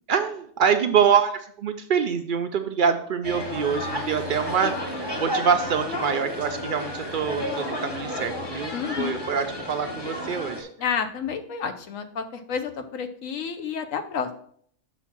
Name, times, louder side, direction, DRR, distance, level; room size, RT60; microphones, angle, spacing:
voice 1, 0.1-10.7, right 7 dB, 65° right, 7 dB, 0.5 m, -25 dB
sound 1, 3.2-10.6, left 1 dB, 20° left, 0.9 m, -32 dB
voice 2, 8.7-9.2 10.8-14.4, left 6 dB, 80° left, 8 dB, 1.1 m, -30 dB
6.2 x 4.0 x 5.9 m, 0.62 s
omnidirectional pair, 1.4 m